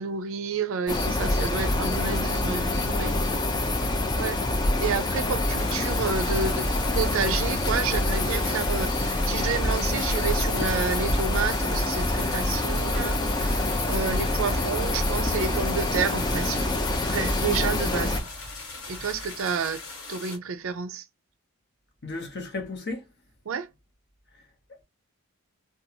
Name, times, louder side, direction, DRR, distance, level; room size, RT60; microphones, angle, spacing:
voice 1, 0.0-3.5 3.8-4.4 4.8-18.3 18.9-19.8 20.1-21.1 23.5-23.7, right 5 dB, 65° right, 0.4 m, -30 dB
sound 1, 0.9-18.2, left 2 dB, 20° left, 0.3 m, -26 dB
sound 2, 5.6-20.4, left 3 dB, 70° left, 1.3 m, -41 dB
sound 3, 14.4-20.3, right 1 dB, 5° right, 0.8 m, -45 dB
voice 2, 22.0-23.1 24.7-24.8, left 3 dB, 50° left, 0.8 m, -34 dB
2.6 x 2.3 x 2.7 m
head